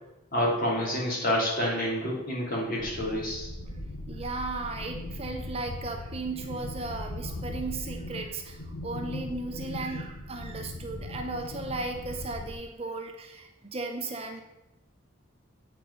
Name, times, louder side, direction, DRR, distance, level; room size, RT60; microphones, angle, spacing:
voice 1, 0.3-3.5, equal, 45° left, -4 dB, 2.8 m, -28 dB
sound 1, 2.8-12.5, left 1 dB, 75° left, 1.0 m, -39 dB
voice 2, 4.1-14.4, right 3 dB, 30° right, 4 dB, 0.6 m, -36 dB
8.4 x 4.5 x 5.4 m, 0.94 s
head